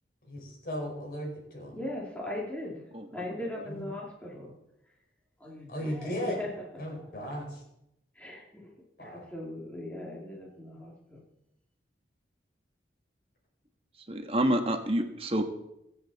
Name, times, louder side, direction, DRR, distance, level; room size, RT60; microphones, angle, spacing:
voice 1, 0.2-1.8 3.6-3.9 5.7-6.4 6.8-7.6 9.0-9.3, equal, 55° left, 0 dB, 4.8 m, -36 dB
voice 2, 1.7-2.8 3.1-4.6 5.4-6.5 6.9-7.1 8.1-8.7 9.0-11.2, left 1 dB, 10° left, -4 dB, 2.4 m, -39 dB
voice 3, 2.9-3.3 14.1-15.4, right 1 dB, 30° right, 5 dB, 1.4 m, -28 dB
24.0 x 8.0 x 4.1 m, 0.84 s
head